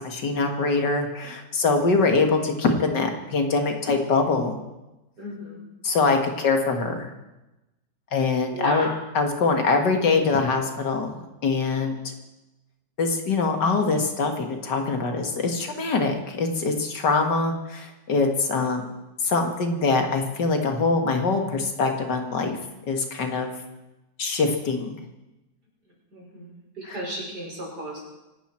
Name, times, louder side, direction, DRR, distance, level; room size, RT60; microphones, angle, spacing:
voice 1, 0.0-4.6 5.8-7.1 8.1-8.9 9.1-12.1 13.0-18.9 19.2-22.6 22.9-23.5 24.2-24.9 26.8-27.0, left 4 dB, 70° left, 4 dB, 2.3 m, -23 dB
voice 2, 5.2-5.6 8.5-8.9 26.1-28.0, right 1 dB, 60° right, -3 dB, 6.2 m, -34 dB
25.0 x 12.5 x 4.4 m, 1.0 s
omnidirectional pair, 2.0 m